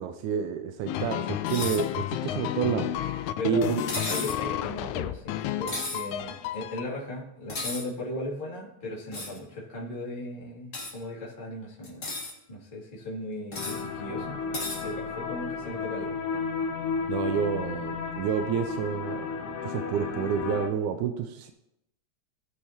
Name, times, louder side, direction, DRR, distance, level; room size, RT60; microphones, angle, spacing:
voice 1, 0.0-2.9 3.4-3.8 17.1-21.5, right 8 dB, 85° right, 6 dB, 2.0 m, -29 dB
sound 1, 0.9-6.8, left 12 dB, 85° left, 2.0 m, -32 dB
sound 2, 1.5-1.8 3.9-4.4 5.7-6.1 7.5-7.8 9.1-9.4 10.7-10.9 11.8-12.3 13.5-13.8 14.5-14.8, left 2 dB, 35° left, 1.4 m, -34 dB
voice 2, 3.4-3.8 4.0-5.3 5.6-12.1 12.5-14.4 14.8-16.1, left 2 dB, 15° left, -6 dB, 2.2 m, -37 dB
sound 3, 13.6-20.7, left 5 dB, 65° left, 1.4 m, -33 dB
19.0 x 6.5 x 2.9 m, 0.85 s
omnidirectional pair, 3.4 m